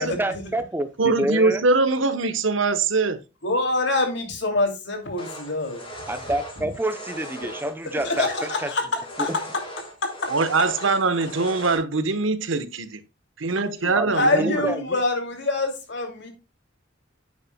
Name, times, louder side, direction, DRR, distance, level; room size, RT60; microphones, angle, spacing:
voice 1, 0.0-1.6 6.1-8.7 9.3-9.4 13.9-15.0, right 1 dB, 10° right, 0.6 m, -28 dB
voice 2, 1.0-3.2 10.3-13.0 13.4-14.7, right 3 dB, 70° right, 1.0 m, -22 dB
voice 3, 3.4-5.8 8.0-8.8 9.2-9.3 10.0-10.3 13.6-16.3, left 2 dB, 60° left, 2.6 m, -25 dB
sound 1, 5.2-11.8, equal, 25° left, 2.7 m, -39 dB
9.8 x 8.8 x 2.2 m
head